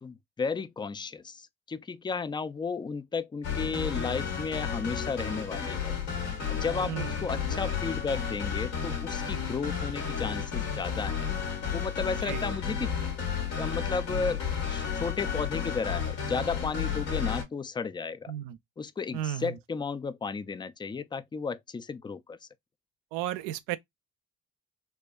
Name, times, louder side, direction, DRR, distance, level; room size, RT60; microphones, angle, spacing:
voice 1, 0.0-6.0 6.5-11.3 11.7-12.9 13.6-18.3 18.8-22.4, left 5 dB, 10° left, 0.3 m, -34 dB
sound 1, 3.4-17.4, left 7 dB, 80° left, 1.4 m, -32 dB
voice 2, 12.1-12.5 18.3-18.6 19.1-19.6 23.1-23.8, right 12 dB, 75° right, 0.6 m, -34 dB
4.4 x 2.2 x 2.2 m
hypercardioid pair, 45°, 42 cm